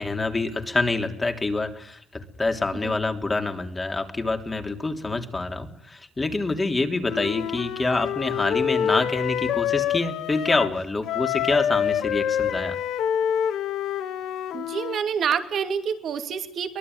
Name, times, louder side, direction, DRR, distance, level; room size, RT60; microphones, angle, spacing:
voice 1, 0.0-12.8, left 3 dB, 25° left, 5 dB, 3.3 m, -26 dB
Wind instrument woodwind instrument, 7.0-10.8 11.0-15.0, left 9 dB, 85° left, 1.2 m, -27 dB
voice 2, 14.5-16.8, right 7 dB, 65° right, 8 dB, 2.7 m, -27 dB
23.5 x 19.5 x 9.5 m, 0.76 s
cardioid pair, 90°, 0 cm